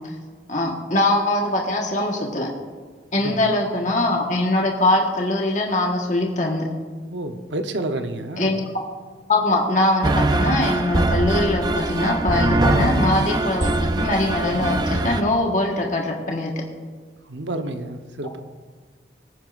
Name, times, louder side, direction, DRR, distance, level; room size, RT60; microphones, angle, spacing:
voice 1, 0.5-2.5 3.1-6.6 8.4-8.6 9.3-16.5, left 2 dB, 45° left, -1 dB, 1.4 m, -22 dB
voice 2, 3.2-3.7 7.1-8.6 17.3-18.4, right 2 dB, 90° right, 7 dB, 0.9 m, -30 dB
sound 1, 10.0-15.2, right 2 dB, 25° right, 0.6 m, -22 dB
19.5 x 9.2 x 2.5 m, 1.5 s
head